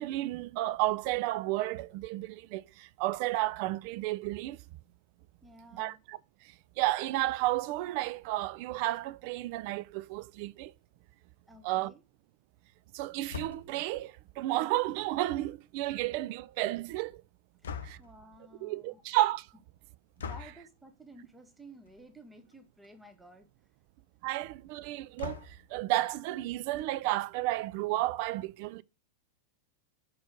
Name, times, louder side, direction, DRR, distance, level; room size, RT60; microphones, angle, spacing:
voice 1, 0.0-4.6 5.7-6.2 6.8-10.7 11.6-11.9 12.9-17.2 17.8-18.0 18.6-19.5 24.2-28.8, right 17 dB, 45° right, 0.4 m, -32 dB
voice 2, 5.4-6.0 11.5-12.0 17.6-19.0 20.2-23.5, right 1 dB, 10° right, 1.0 m, -54 dB
sound 1, 13.3-13.8 17.6-18.2 20.2-20.6 21.9-22.1 22.5-22.6 22.8-22.9 25.2-25.8, left 6 dB, 65° left, 0.7 m, -41 dB
6.0 x 4.2 x 6.1 m
figure-of-eight pair, 90°, 0 cm